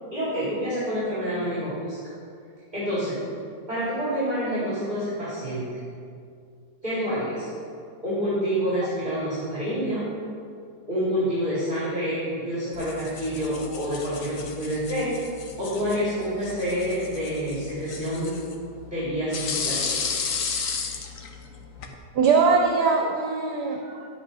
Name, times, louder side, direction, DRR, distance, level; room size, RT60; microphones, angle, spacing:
voice 1, 0.1-2.0 2.7-3.2 3.7-5.8 6.8-7.5 8.0-10.1 10.9-15.2 15.6-18.3 18.9-20.2, equal, 25° right, -10 dB, 2.7 m, -28 dB
sound 1, 12.7-21.9, left 5 dB, 60° left, 1.1 m, -34 dB
voice 2, 22.1-24.1, right 4 dB, 75° right, 2 dB, 1.3 m, -21 dB
11.0 x 8.2 x 4.1 m, 2.3 s
omnidirectional pair, 1.8 m